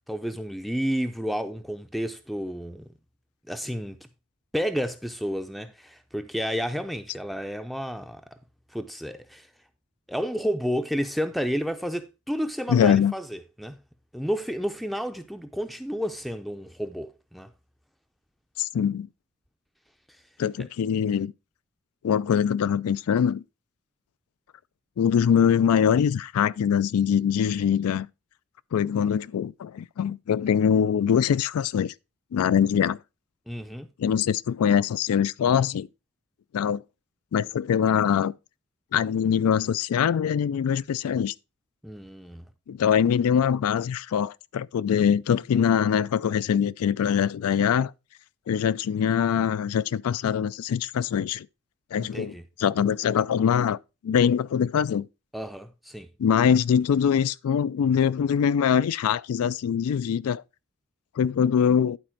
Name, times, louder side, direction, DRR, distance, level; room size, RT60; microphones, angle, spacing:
voice 1, 0.1-2.9 3.5-4.0 4.5-8.2 8.7-9.5 10.1-13.8 14.1-17.5 33.5-33.9 41.8-42.4 51.9-52.4 55.3-56.1, equal, ahead, 0.4 m, -31 dB
voice 2, 12.7-13.1 18.6-19.1 20.4-21.3 22.0-23.4 25.0-28.1 28.7-31.9 32.3-33.0 34.0-35.9 36.5-36.8 37.3-38.3 38.9-41.3 42.7-47.9 48.5-51.5 51.9-53.8 54.0-55.1 56.2-60.4 61.2-62.0, left 8 dB, 85° left, 0.3 m, -23 dB
11.5 x 4.3 x 4.5 m
head